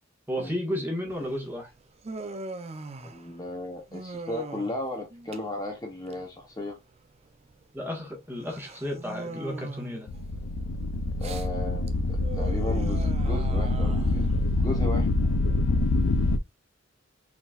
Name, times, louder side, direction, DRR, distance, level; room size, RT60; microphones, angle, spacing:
voice 1, 0.3-1.7 7.7-10.1, equal, 10° right, 1.5 m, -32 dB
Human voice, 1.1-16.3, right 2 dB, 30° right, 0.5 m, -42 dB
voice 2, 3.0-6.8 11.2-14.3 14.6-15.1, left 1 dB, 20° left, 0.8 m, -35 dB
sound 1, 10.1-16.4, left 2 dB, 90° left, 0.4 m, -25 dB
4.4 x 4.0 x 2.4 m
head